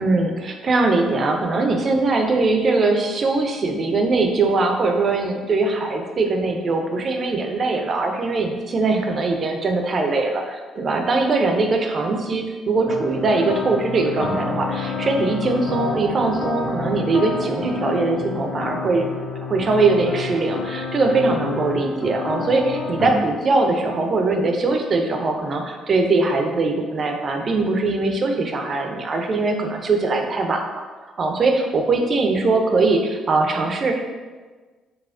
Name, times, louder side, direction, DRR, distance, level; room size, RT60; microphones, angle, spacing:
voice 1, 0.0-19.1 19.5-30.6 31.2-34.0, right 3 dB, 40° right, 3 dB, 0.4 m, -21 dB
sound 1, 12.9-23.2, left 4 dB, 40° left, 0.6 m, -29 dB
4.0 x 2.3 x 2.5 m, 1.4 s
figure-of-eight pair, 45°, 0 cm